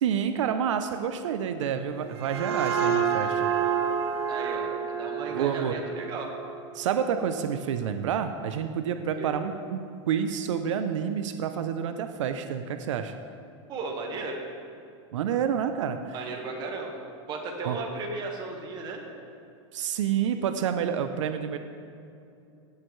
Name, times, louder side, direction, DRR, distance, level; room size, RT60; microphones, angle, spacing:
voice 1, 0.0-3.5 5.3-5.8 6.7-9.8 10.1-13.1 15.1-16.2 17.6-17.8 19.7-21.6, right 8 dB, 90° right, 8 dB, 0.6 m, -28 dB
sound 1, 1.9-7.4, right 7 dB, 60° right, 0.9 m, -29 dB
voice 2, 4.3-6.3 9.2-9.3 13.7-14.4 16.1-17.0 17.3-19.0, right 3 dB, 30° right, 1 dB, 1.4 m, -35 dB
16.5 x 6.6 x 3.2 m, 2.6 s
supercardioid pair, 150°, 15 cm